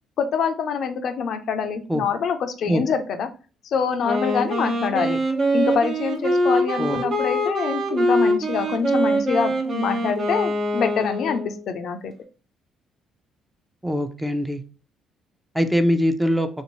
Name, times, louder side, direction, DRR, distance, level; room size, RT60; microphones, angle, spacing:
voice 1, 0.2-3.3 3.6-5.2 5.5-12.1, left 6 dB, 65° left, 7 dB, 0.4 m, -25 dB
Wind instrument woodwind instrument, 4.0-11.7, right 1 dB, 50° right, 1.1 m, -23 dB
voice 2, 13.8-14.6 15.5-16.5, equal, 5° right, 7 dB, 0.6 m, -22 dB
3.1 x 2.7 x 3.0 m, 0.36 s
hypercardioid pair, 55°, 0 cm